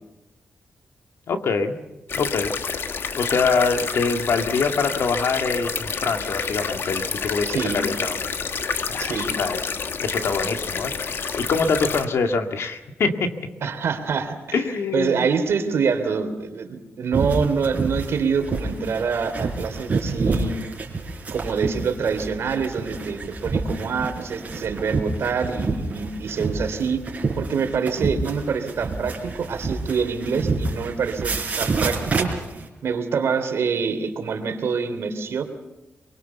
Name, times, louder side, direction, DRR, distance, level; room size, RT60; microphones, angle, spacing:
voice 1, 1.3-1.8 2.2-2.8 3.2-8.2 8.9-9.6 10.0-13.3 14.5-15.2, left 4 dB, 70° left, 5 dB, 2.2 m, -24 dB
sound 1, 2.1-12.1, left 5 dB, 55° left, 1.3 m, -29 dB
voice 2, 7.4-7.8 9.0-9.3 13.6-14.3 14.9-20.5 21.3-27.0 27.4-32.3 32.8-35.4, right 5 dB, 70° right, 6 dB, 3.1 m, -25 dB
sound 2, 17.1-32.7, right 3 dB, 35° right, 4.8 m, -28 dB
23.5 x 23.5 x 7.1 m, 1.0 s
wide cardioid pair, 140°, 5 cm